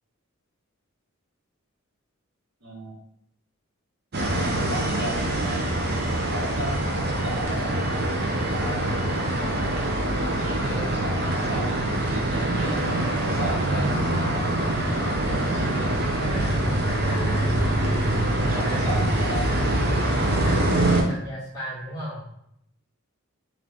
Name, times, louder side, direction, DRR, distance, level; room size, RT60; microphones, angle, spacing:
voice 1, 2.6-2.9 4.2-5.6 6.1-7.9 8.5-9.6 10.2-12.8 13.3-16.0 18.4-19.4, right 1 dB, 80° right, -4 dB, 1.4 m, -36 dB
sound 1, 4.1-21.0, right 1 dB, 50° right, 0.6 m, -24 dB
voice 2, 16.3-18.9 20.4-22.2, equal, 15° left, -9 dB, 1.7 m, -37 dB
3.7 x 3.2 x 3.5 m, 0.76 s
head